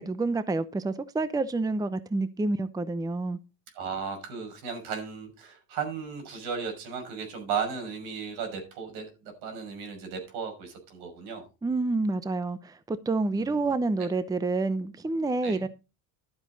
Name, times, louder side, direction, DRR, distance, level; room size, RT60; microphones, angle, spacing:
voice 1, 0.0-3.4 11.6-15.7, right 3 dB, 10° right, 0.7 m, -28 dB
voice 2, 3.7-11.4 13.4-13.6 14.0-14.1 15.4-15.7, right 6 dB, 80° right, 6.0 m, -35 dB
12.0 x 8.0 x 4.0 m
cardioid pair, 115°, 38 cm